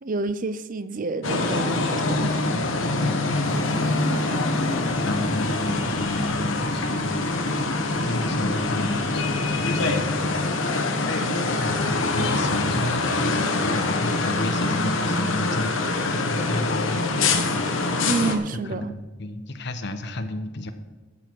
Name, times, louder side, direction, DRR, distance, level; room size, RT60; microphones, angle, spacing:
voice 1, 0.0-2.4 18.1-18.9, right 3 dB, 45° right, 0.6 m, -29 dB
sound 1, 1.2-18.4, left 2 dB, 90° left, 1.3 m, -24 dB
voice 2, 3.0-3.6 5.1-7.2 7.8-11.0 11.6-18.0 18.7-20.7, left 1 dB, 60° left, 1.1 m, -32 dB
sound 2, 3.3-16.1, left 2 dB, 25° left, 1.3 m, -44 dB
12.5 x 8.4 x 4.7 m
head